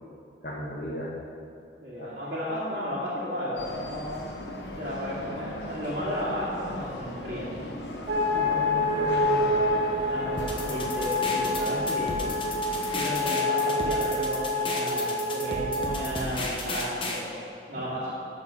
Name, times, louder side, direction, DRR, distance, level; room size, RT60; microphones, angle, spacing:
voice 1, 0.4-1.1 2.0-2.1 8.3-9.5 17.8-17.9, equal, 55° left, -6 dB, 1.3 m, -36 dB
voice 2, 1.8-4.1 4.8-7.8 10.1-12.4 12.9-17.3 17.7-18.1, equal, 50° right, -10 dB, 2.3 m, -33 dB
sound 1, 3.6-13.1, left 1 dB, 75° left, 1.0 m, -37 dB
sound 2, 8.1-16.0, left 1 dB, 80° right, 1.5 m, -27 dB
sound 3, 10.4-17.2, left 2 dB, 30° left, 1.0 m, -34 dB
12.0 x 4.6 x 7.0 m, 2.5 s
head